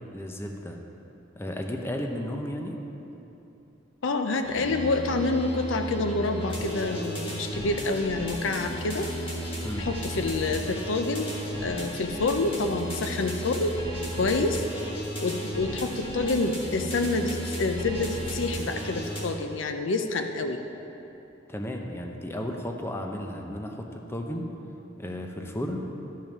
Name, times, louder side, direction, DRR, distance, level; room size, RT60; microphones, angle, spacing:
voice 1, 0.1-0.8 1.4-2.8 9.6-9.9 21.5-24.5 25.0-25.8, left 1 dB, 15° left, 2 dB, 0.7 m, -33 dB
voice 2, 4.0-9.1 9.8-13.7 14.2-14.6 15.2-20.6, left 3 dB, 75° left, 6 dB, 0.6 m, -27 dB
sound 1, 4.4-19.2, equal, 30° left, 1.7 m, -34 dB
12.5 x 5.4 x 6.0 m, 3.0 s
head